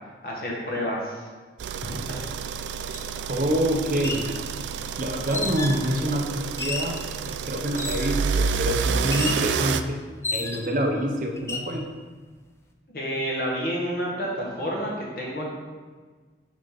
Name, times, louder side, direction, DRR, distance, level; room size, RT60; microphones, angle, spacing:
voice 1, 0.2-1.3 1.8-2.2 12.9-15.5, equal, 55° left, -3 dB, 1.5 m, -29 dB
sound 1, 1.6-9.8, right 6 dB, 85° right, 0.3 m, -29 dB
sound 2, 2.9-3.0 3.9-4.3 5.3-5.9 6.6-7.0 7.8-8.2 9.1-9.5 10.2-10.8 11.4-11.7, left 3 dB, 15° left, 0.3 m, -31 dB
voice 2, 3.3-4.3 5.0-7.0 7.2-10.0 10.3-11.9, equal, 50° right, 2 dB, 0.7 m, -26 dB
7.2 x 4.2 x 3.7 m, 1.4 s
head